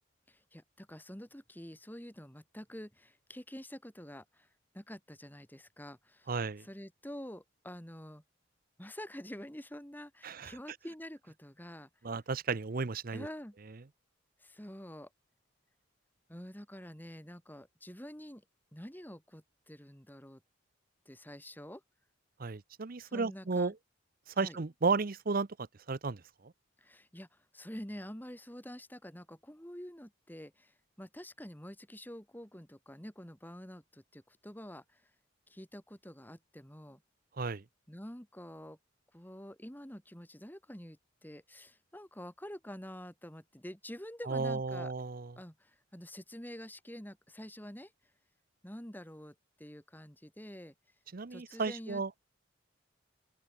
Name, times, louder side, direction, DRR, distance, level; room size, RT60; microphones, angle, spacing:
voice 1, 0.3-4.5 4.7-8.2 8.8-11.9 13.1-13.6 14.4-15.1 16.3-18.4 18.7-20.4 21.1-21.8 23.0-23.7 24.4-24.6 26.8-35.0 35.5-37.0 37.9-38.8 39.1-44.9 45.4-47.9 48.6-50.7 51.3-52.0, equal, 10° left, 3.4 m, -47 dB
voice 2, 6.3-6.6 10.2-10.5 12.0-13.3 22.4-23.7 24.4-25.5 25.9-26.2 37.4-37.6 44.3-45.3 51.1-52.1, right 4 dB, 50° right, 0.7 m, -33 dB
open air
head